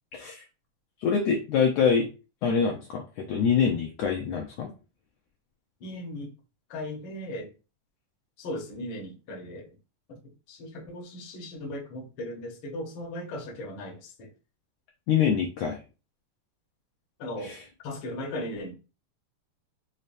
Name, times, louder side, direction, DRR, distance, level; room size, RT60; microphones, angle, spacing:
voice 1, 0.1-0.4 1.0-2.1 2.4-4.7 15.1-15.8 17.4-17.6, left 6 dB, 85° left, 1.4 m, -25 dB
voice 2, 5.8-6.3 6.7-7.5 8.4-9.7 10.1-10.2 10.5-14.3 17.2-17.6 17.8-18.7, left 1 dB, 65° left, 1.2 m, -37 dB
5.4 x 2.1 x 2.5 m
omnidirectional pair, 3.6 m